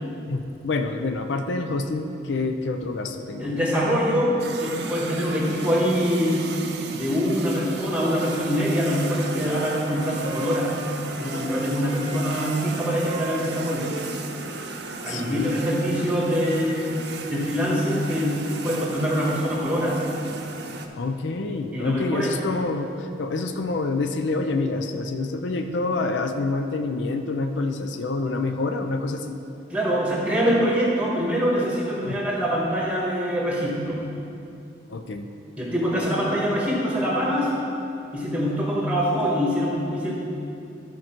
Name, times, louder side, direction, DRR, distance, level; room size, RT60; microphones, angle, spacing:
voice 1, 0.3-3.5 15.1-15.6 20.9-29.4 32.0-32.2 34.9-35.3, left 3 dB, 75° left, 6 dB, 0.5 m, -27 dB
voice 2, 3.4-6.4 6.9-10.8 11.1-14.0 15.0-16.9 17.3-20.0 21.7-22.4 29.7-34.0 35.6-37.5 38.1-40.1, equal, 5° right, -4 dB, 1.5 m, -24 dB
sound 1, 4.4-20.9, right 3 dB, 60° right, 0.6 m, -36 dB
Wind instrument woodwind instrument, 8.7-11.6 11.9-15.4, right 2 dB, 30° right, 1.0 m, -37 dB
14.0 x 4.7 x 4.5 m, 2.6 s
head